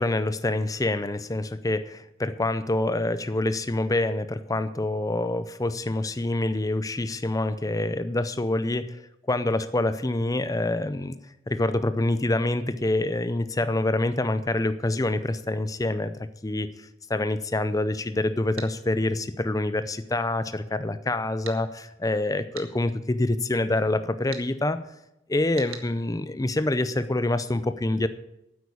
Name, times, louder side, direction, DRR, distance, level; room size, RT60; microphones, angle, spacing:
voice 1, 0.0-9.0 9.3-11.1 11.5-16.1 16.4-24.8 25.3-28.1, left 2 dB, 15° left, 12 dB, 0.5 m, -26 dB
sound 1, 18.6-18.7 21.4-21.6 22.5-22.7 24.3-24.5 25.6-25.9, right 8 dB, 75° right, 1.5 m, -39 dB
9.5 x 8.2 x 8.4 m, 0.87 s
head